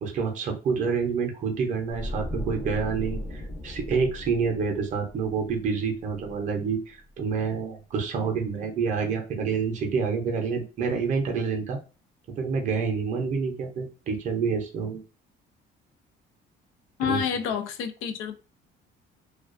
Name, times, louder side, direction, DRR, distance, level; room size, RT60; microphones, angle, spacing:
voice 1, 0.0-11.8 12.4-15.0 17.1-17.2, right 5 dB, 40° right, 0.5 m, -28 dB
sound 1, 1.9-7.0 7.3-7.5, left 1 dB, 15° left, 0.5 m, -37 dB
voice 2, 17.0-18.4, left 8 dB, 85° left, 0.4 m, -28 dB
2.3 x 2.2 x 2.5 m
cardioid pair, 170°, 20 cm